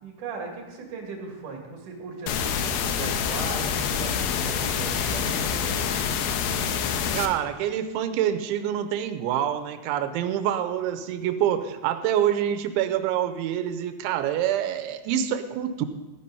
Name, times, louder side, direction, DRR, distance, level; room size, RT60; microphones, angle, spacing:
voice 1, 0.0-5.8, right 4 dB, 50° right, 1 dB, 3.2 m, -38 dB
sound 1, 2.3-7.3, left 7 dB, 90° left, 2.2 m, -26 dB
voice 2, 7.1-15.9, right 10 dB, 80° right, 9 dB, 3.0 m, -26 dB
14.5 x 9.8 x 5.4 m, 1.1 s
omnidirectional pair, 5.4 m